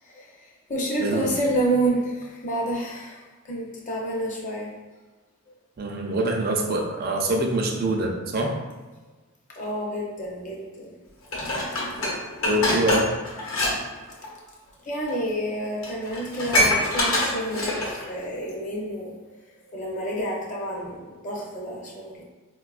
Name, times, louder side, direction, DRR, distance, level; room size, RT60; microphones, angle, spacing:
voice 1, 0.0-4.7 9.5-11.0 14.2-14.5 14.8-19.2 19.7-22.2, right 1 dB, 35° left, -3 dB, 0.6 m, -29 dB
voice 2, 5.8-8.5 12.5-13.1, right 1 dB, 45° right, 1 dB, 0.5 m, -24 dB
Dishes pots and pans, 11.3-13.7 14.0-14.3 15.1-15.2 15.5-15.6 15.8-18.0 18.5-18.6, left 1 dB, 65° left, 0.9 m, -25 dB
4.2 x 2.3 x 2.4 m, 1.3 s
head